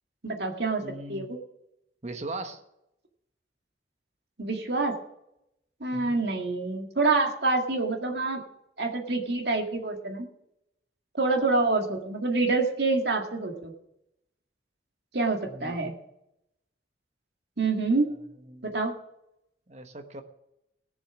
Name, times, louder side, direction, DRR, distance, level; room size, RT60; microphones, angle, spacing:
voice 1, 0.2-0.8 1.1-1.4 4.4-4.9 5.8-8.4 8.8-10.3 11.1-13.7 15.1-15.9 17.6-18.1 18.6-18.9, right 3 dB, 65° right, 2 dB, 2.0 m, -26 dB
voice 2, 0.8-1.3 2.0-2.6 5.9-6.2 15.5-15.8 18.5-18.8 19.7-20.2, right 2 dB, 35° right, 7 dB, 1.1 m, -39 dB
18.5 x 7.3 x 6.1 m, 0.84 s
head